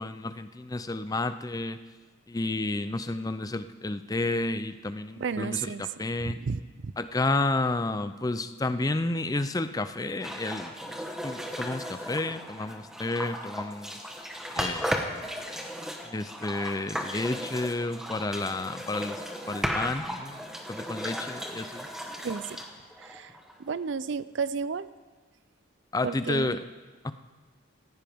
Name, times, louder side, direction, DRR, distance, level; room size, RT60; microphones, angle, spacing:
voice 1, 0.0-1.8 2.3-6.4 7.0-14.0 14.5-15.1 16.0-19.2 19.5-20.4 20.7-21.9 25.9-26.6 27.0-27.1, left 2 dB, 15° left, 11 dB, 0.4 m, -31 dB
voice 2, 5.2-5.8 6.3-6.9 22.2-22.6 23.0-24.9 26.0-26.6, right 5 dB, 55° right, 16 dB, 0.4 m, -33 dB
sound 1, 10.2-23.7, equal, ahead, 1.0 m, -36 dB
18.0 x 15.0 x 3.6 m, 1.4 s
head